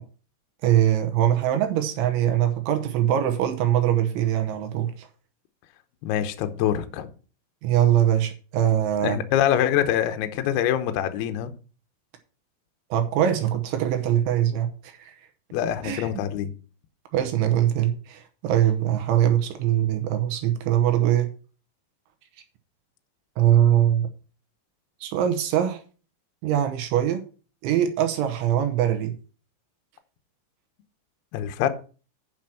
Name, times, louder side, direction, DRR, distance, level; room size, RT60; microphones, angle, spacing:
voice 1, 0.6-5.1 7.6-9.2 12.9-15.1 15.8-16.1 17.1-21.3 23.4-24.1 25.0-25.8 26.4-27.2 27.6-29.1, right 11 dB, 80° right, 3.2 m, -22 dB
voice 2, 6.0-7.1 9.0-11.5 15.5-16.5 31.3-31.7, left 10 dB, 85° left, 2.3 m, -24 dB
9.0 x 6.1 x 5.7 m
omnidirectional pair, 5.8 m